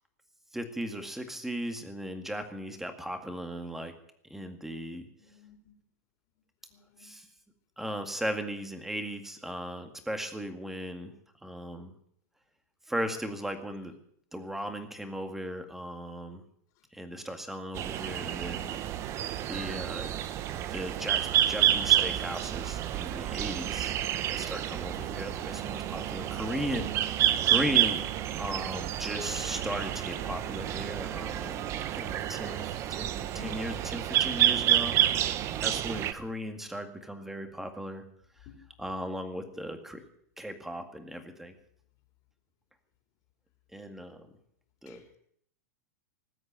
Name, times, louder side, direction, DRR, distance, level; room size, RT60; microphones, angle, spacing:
voice 1, 0.5-4.0 4.3-5.1 7.0-7.3 7.8-11.1 11.4-11.9 12.9-13.9 14.3-16.4 16.9-18.7 19.5-20.1 20.7-24.0 24.3-26.9 27.2-28.0 28.4-35.3 35.6-38.0 38.8-40.1 40.4-41.5 43.7-44.3 44.8-45.0, equal, 5° right, 6 dB, 2.0 m, -37 dB
voice 2, 5.2-5.7 6.7-7.2 33.2-33.8 38.5-38.6 44.9-45.2, left 7 dB, 40° left, 3 dB, 3.7 m, -51 dB
sound 1, 17.7-36.1, right 12 dB, 35° right, 0.9 m, -29 dB
19.5 x 7.9 x 9.0 m, 0.68 s
supercardioid pair, 140°, 9 cm